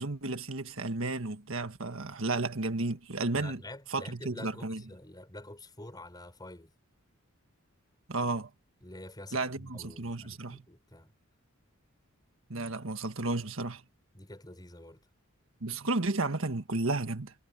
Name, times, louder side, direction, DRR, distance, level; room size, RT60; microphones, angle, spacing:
voice 1, 0.0-3.6 3.9-4.8 8.1-8.5 9.3-10.6 12.5-13.8 15.6-17.3, right 2 dB, 65° right, 1.7 m, -33 dB
voice 2, 3.3-6.7 8.8-11.1 14.1-15.0, left 1 dB, 20° left, 6.8 m, -47 dB
head